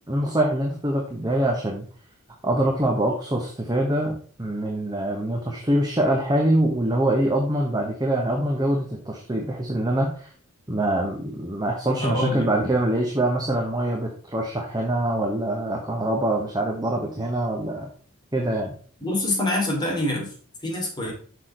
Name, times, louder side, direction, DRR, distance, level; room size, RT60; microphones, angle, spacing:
voice 1, 0.1-1.8 2.4-10.3 10.7-17.9 18.3-18.8, right 1 dB, 20° right, 0 dB, 1.2 m, -24 dB
voice 2, 12.0-12.5 19.0-20.3 20.6-21.1, left 1 dB, 20° left, -1 dB, 2.9 m, -25 dB
6.6 x 6.1 x 4.4 m, 0.43 s
head